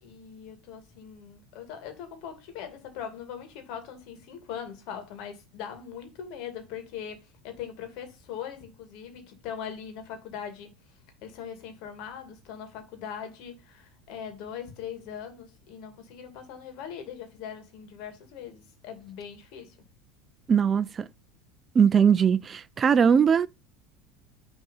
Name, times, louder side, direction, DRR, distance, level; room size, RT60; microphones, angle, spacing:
voice 1, 0.0-10.7 11.2-19.8, left 8 dB, 65° left, 2.5 m, -41 dB
voice 2, 20.5-21.1 21.8-23.5, right 7 dB, 30° right, 0.4 m, -20 dB
6.3 x 4.1 x 5.5 m
supercardioid pair, 100°, 0 cm